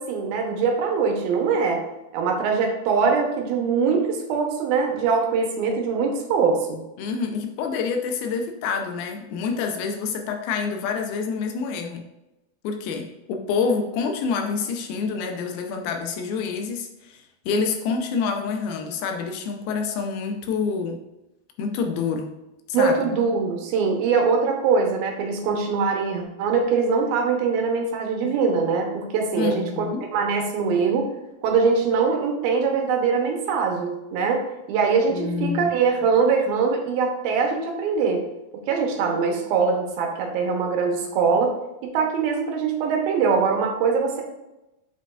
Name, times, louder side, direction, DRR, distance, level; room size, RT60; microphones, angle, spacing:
voice 1, 0.0-1.8 2.1-6.8 22.7-31.1 31.4-34.4 34.7-38.2 38.7-41.5 41.8-44.2, right 5 dB, 80° right, 2 dB, 2.7 m, -22 dB
voice 2, 7.0-12.0 12.6-21.0 21.6-22.3 22.8-23.1 29.4-30.1 35.1-35.7, left 5 dB, 85° left, 4 dB, 2.5 m, -27 dB
8.6 x 5.0 x 2.4 m, 0.94 s
omnidirectional pair, 4.3 m